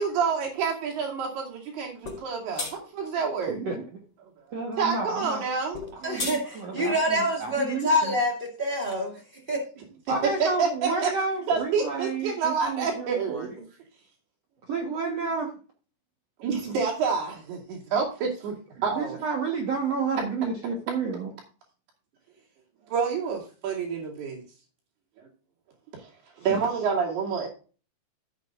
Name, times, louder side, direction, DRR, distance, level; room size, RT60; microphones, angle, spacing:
voice 1, 0.0-3.6 4.8-5.8 10.4-11.1 11.5-13.7 16.4-19.2 22.8-24.4 25.2-25.3 26.0-26.1 26.4-27.5, right 5 dB, 65° right, -1 dB, 4.5 m, -28 dB
sound 1, 2.1-2.2 2.6-2.7 5.7-6.4, left 4 dB, 30° left, 4.7 m, -32 dB
voice 2, 3.5-3.9 4.5-5.4 6.0-8.1 10.1-13.5 14.7-15.5 18.9-21.3 26.5-26.6, right 4 dB, 85° right, 1 dB, 1.4 m, -30 dB
voice 3, 6.0-9.2 9.5-9.6, equal, 35° right, 0 dB, 0.8 m, -26 dB
14.5 x 8.2 x 2.5 m, 0.38 s
omnidirectional pair, 5.1 m